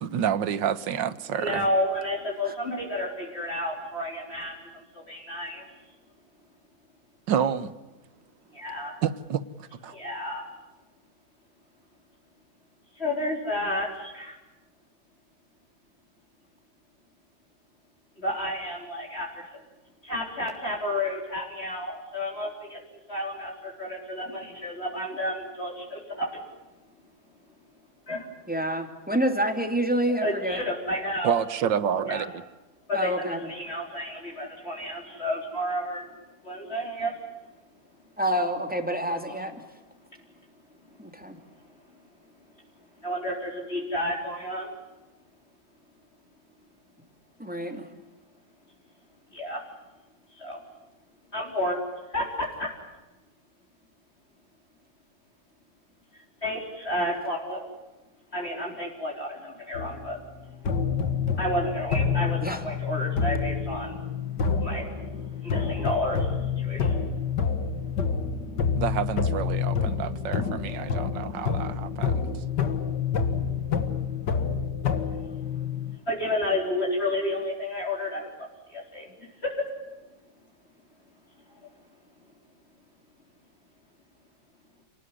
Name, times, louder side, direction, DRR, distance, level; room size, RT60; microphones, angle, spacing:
voice 1, 0.0-1.7 7.3-7.8 9.0-10.0 31.2-32.4 68.8-72.4, right 8 dB, 85° right, 1.8 m, -29 dB
voice 2, 1.4-5.7 8.5-8.9 9.9-10.4 13.0-14.4 18.2-19.6 20.0-22.8 23.1-26.4 28.1-28.3 30.2-31.4 32.1-32.2 32.9-36.1 36.4-37.2 39.1-39.5 43.0-44.7 49.3-49.6 50.3-50.6 51.3-51.8 52.1-52.7 56.1-57.7 58.3-60.2 61.4-64.0 64.6-65.1 65.4-67.0 75.1-75.3 76.1-79.1 79.4-79.7, left 1 dB, 35° left, 4.3 m, -31 dB
voice 3, 28.5-30.6 32.9-33.4 38.2-39.5 41.0-41.4 47.4-47.9 62.4-62.6, right 1 dB, 5° right, 2.8 m, -27 dB
sound 1, 59.7-60.2 60.6-76.0, left 6 dB, 70° left, 2.3 m, -28 dB
29.0 x 19.0 x 9.7 m
omnidirectional pair, 1.9 m